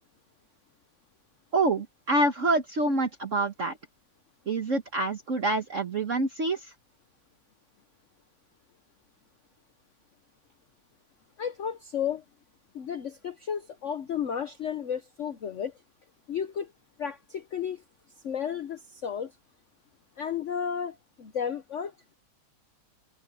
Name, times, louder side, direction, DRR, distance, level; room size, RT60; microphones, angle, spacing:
voice 1, 1.5-3.8 4.5-6.7, right 2 dB, 45° right, 1.6 m, -26 dB
voice 2, 11.4-12.2 12.7-15.7 16.3-16.7 17.0-17.8 18.2-19.3 20.2-21.9, left 8 dB, 50° left, 1.0 m, -33 dB
omnidirectional pair, 2.0 m